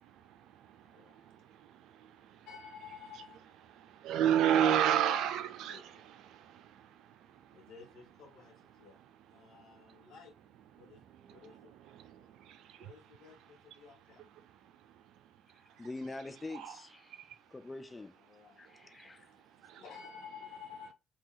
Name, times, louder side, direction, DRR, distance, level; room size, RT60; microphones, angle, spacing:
voice 1, 0.0-2.5 3.7-7.7 8.7-9.1 9.4-10.1 10.8-12.9 14.3-15.9 16.5-16.8 17.1-17.5 18.6-19.8, right 9 dB, 90° right, 0.5 m, -35 dB
voice 2, 0.7-1.3 2.4-3.4 5.7-5.8 7.5-9.0 9.3-10.4 10.7-11.7 12.8-14.2 18.2-18.7 19.0-19.3 19.6-20.9, left 6 dB, 80° left, 1.7 m, -53 dB
voice 3, 15.5-18.1 18.6-19.3, left 2 dB, 20° left, 0.4 m, -45 dB
2.9 x 2.8 x 3.9 m
cardioid pair, 90°, 0 cm